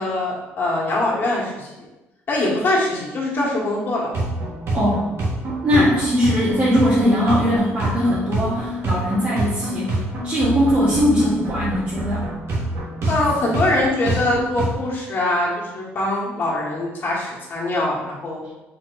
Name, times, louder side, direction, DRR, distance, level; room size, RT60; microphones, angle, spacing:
voice 1, 0.0-1.7 2.3-4.1 5.7-5.9 13.1-18.4, left 2 dB, 45° left, -4 dB, 1.5 m, -23 dB
sound 1, 4.1-14.7, right 1 dB, 55° right, 1.3 m, -27 dB
voice 2, 4.7-5.1 5.6-12.3, equal, 30° right, -9 dB, 1.2 m, -20 dB
4.2 x 4.1 x 2.6 m, 1.0 s
cardioid pair, 105°, 5 cm